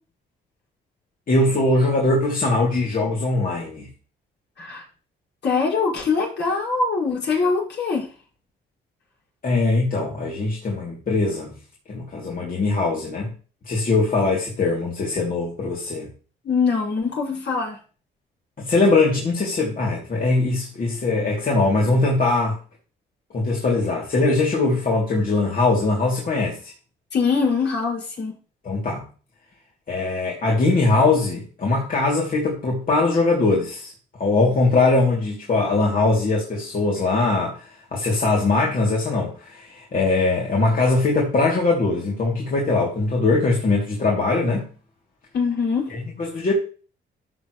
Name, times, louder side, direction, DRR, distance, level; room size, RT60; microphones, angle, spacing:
voice 1, 1.3-3.9 9.4-11.5 11.9-13.3 13.6-16.1 18.6-22.6 23.3-26.7 28.6-29.1 29.9-33.9 34.2-44.7 45.9-46.5, left 3 dB, 45° left, -3 dB, 3.1 m, -21 dB
voice 2, 5.4-8.0 16.4-17.8 27.1-28.3 45.3-45.9, left 4 dB, 60° left, -3 dB, 6.1 m, -23 dB
13.5 x 6.7 x 3.3 m, 0.38 s
cardioid pair, 90°, 20 cm